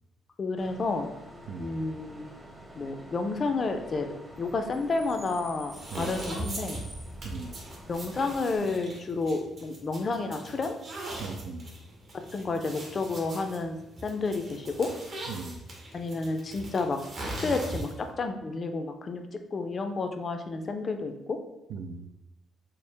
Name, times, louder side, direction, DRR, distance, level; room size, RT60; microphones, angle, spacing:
voice 1, 0.4-1.1 1.6-2.2 2.7-4.1 4.4-6.8 7.9-10.8 12.3-13.8 14.0-14.9 15.9-17.0 17.4-19.2 19.5-21.4, left 3 dB, 40° left, 6 dB, 0.4 m, -30 dB
Bus / Idling / Screech, 0.6-8.6, right 1 dB, 25° right, 0.8 m, -47 dB
sound 1, 5.7-18.1, right 1 dB, 50° right, 1.0 m, -40 dB
voice 2, 11.2-11.7 15.3-15.6 21.7-22.1, right 4 dB, 75° right, 7 dB, 0.3 m, -38 dB
4.4 x 2.0 x 3.3 m, 0.93 s
cardioid pair, 90°, 0 cm